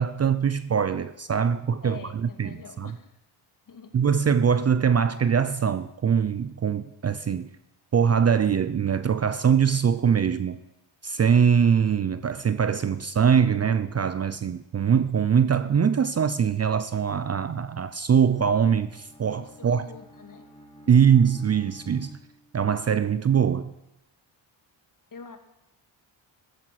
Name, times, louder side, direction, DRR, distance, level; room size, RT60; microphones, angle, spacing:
voice 1, 0.0-2.9 3.9-7.5 7.9-10.6 11.0-19.8 20.9-22.2 22.5-23.7, right 7 dB, 30° right, 0.6 m, -22 dB
voice 2, 1.8-3.1 3.7-4.0 19.4-20.5 20.9-21.1 25.1-25.4, left 5 dB, 40° left, 2.3 m, -44 dB
Bowed string instrument, 18.3-22.7, equal, 15° left, 3.4 m, -51 dB
14.5 x 13.5 x 6.0 m
cardioid pair, 100°, 48 cm